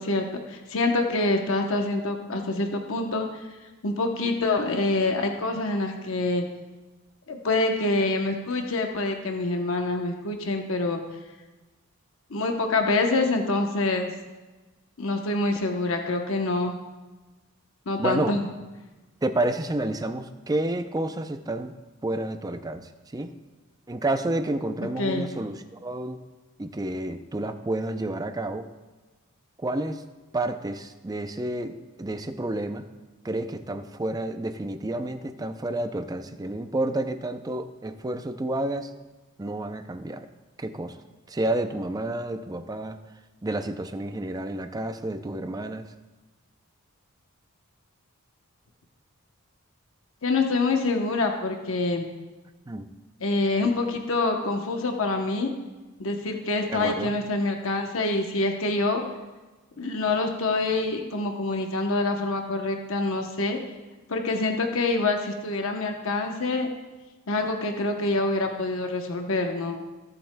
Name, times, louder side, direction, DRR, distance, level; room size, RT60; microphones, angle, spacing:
voice 1, 0.0-3.4 3.8-6.5 7.3-11.0 12.3-14.1 15.0-16.7 17.9-18.5 25.0-25.3 50.2-52.1 53.2-55.5 56.0-59.0 59.8-63.6 64.1-66.7 67.3-69.8, left 2 dB, 65° left, 3 dB, 0.9 m, -26 dB
voice 2, 18.0-18.3 19.2-21.7 22.0-23.3 23.9-26.2 26.6-28.7 29.6-30.0 30.3-32.8 33.2-38.9 39.4-40.3 40.6-41.0 41.3-43.0 43.4-45.9 52.7-52.9 56.7-57.1, right 1 dB, 15° right, 9 dB, 0.4 m, -30 dB
20.5 x 7.7 x 2.2 m, 1.2 s
head